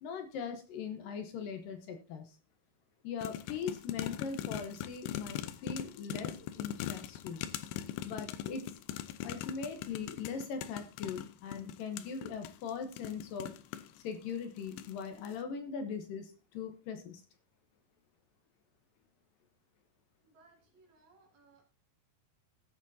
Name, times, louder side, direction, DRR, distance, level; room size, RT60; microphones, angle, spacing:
voice 1, 0.0-2.4 3.0-7.4 8.0-8.8 9.2-13.5 14.0-17.2, left 6 dB, 70° left, 6 dB, 2.5 m, -40 dB
sound 1, 3.2-14.0 14.6-15.0 15.2-15.3, left 11 dB, 85° left, 2.7 m, -41 dB
voice 2, 20.2-21.7, right 3 dB, 55° right, 1 dB, 3.3 m, -64 dB
18.5 x 8.0 x 2.7 m, 0.34 s
omnidirectional pair, 4.4 m